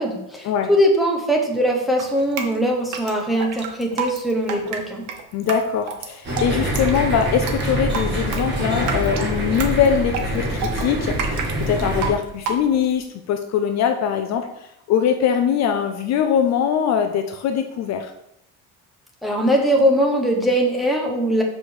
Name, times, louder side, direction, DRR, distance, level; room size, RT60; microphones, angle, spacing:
voice 1, 0.0-5.0 19.2-21.4, equal, ahead, -1 dB, 1.0 m, -21 dB
Drip, 2.0-13.0, right 5 dB, 50° right, 1.1 m, -31 dB
voice 2, 5.3-18.1, left 8 dB, 45° left, 6 dB, 0.6 m, -22 dB
sound 1, 6.2-12.1, right 1 dB, 30° right, 2.3 m, -25 dB
5.4 x 5.0 x 6.3 m, 0.79 s
cardioid pair, 175°, 36 cm